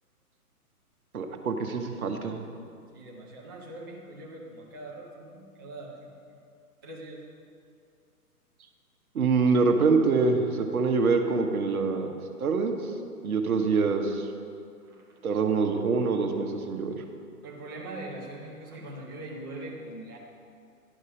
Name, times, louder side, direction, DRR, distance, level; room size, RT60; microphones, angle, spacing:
voice 1, 1.1-2.4 9.1-12.1 12.4-12.7 13.2-14.3 15.2-17.0, right 4 dB, 70° right, 5 dB, 1.1 m, -25 dB
voice 2, 2.9-6.1 6.8-7.2 14.8-15.1 17.4-20.2, right 2 dB, 15° right, -3 dB, 0.4 m, -42 dB
11.0 x 5.4 x 4.9 m, 2.3 s
figure-of-eight pair, 130°, 46 cm